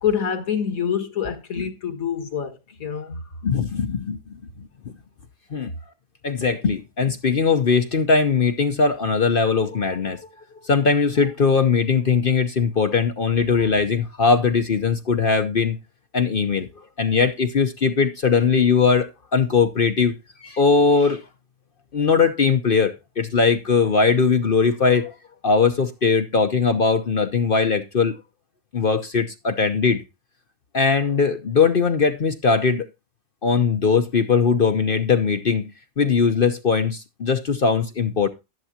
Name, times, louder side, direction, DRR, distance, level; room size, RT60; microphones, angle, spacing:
voice 1, 0.0-3.2, left 8 dB, 70° left, 2.0 m, -26 dB
voice 2, 3.4-4.2 5.5-5.7 6.2-10.2 10.6-15.8 16.1-16.7 17.0-20.1 20.4-21.2 21.9-25.1 25.4-28.2 28.7-30.0 30.7-32.9 33.4-35.7 36.0-38.3, left 5 dB, 45° left, 0.9 m, -20 dB
12.0 x 11.0 x 2.8 m
omnidirectional pair, 1.5 m